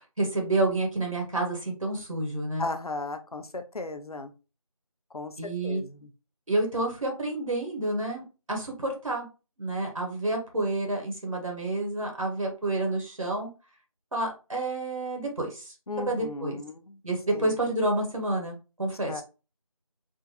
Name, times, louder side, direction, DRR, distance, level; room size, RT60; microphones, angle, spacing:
voice 1, 0.0-2.7 5.4-5.8 6.5-9.3 9.6-13.5 14.1-15.7 16.1-16.6 17.0-19.2, right 2 dB, 60° right, 1 dB, 1.3 m, -29 dB
voice 2, 2.6-4.3 5.1-6.1 15.9-17.0 17.3-17.5 19.1-19.2, left 3 dB, 75° left, 8 dB, 0.7 m, -36 dB
3.6 x 2.5 x 2.8 m, 0.31 s
figure-of-eight pair, 175°, 19 cm